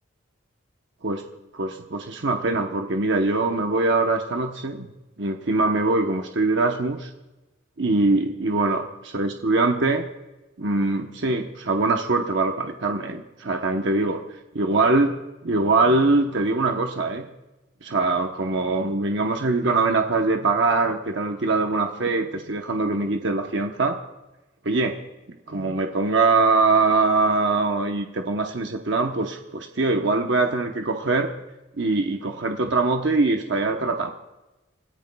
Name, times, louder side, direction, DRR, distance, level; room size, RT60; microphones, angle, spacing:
voice 1, 1.5-4.9 5.2-7.1 7.8-8.8 9.1-10.0 10.6-14.2 14.5-15.1 15.4-17.3 17.8-24.0 24.6-25.0 25.5-31.3 31.8-34.1, right 3 dB, 60° right, 3 dB, 0.9 m, -22 dB
29.5 x 14.5 x 2.3 m, 1.1 s
head